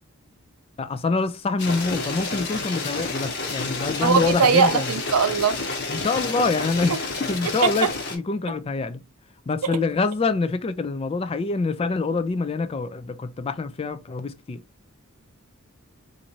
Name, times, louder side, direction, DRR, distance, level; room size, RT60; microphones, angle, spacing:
voice 1, 0.8-4.9 5.9-9.0 9.5-14.6, left 4 dB, 25° left, 0.3 m, -26 dB
sound 1, 1.6-8.2, left 3 dB, 55° left, 1.2 m, -30 dB
voice 2, 4.0-5.6 7.6-7.9 9.6-9.7, right 6 dB, 90° right, 0.6 m, -20 dB
4.0 x 2.6 x 3.0 m
head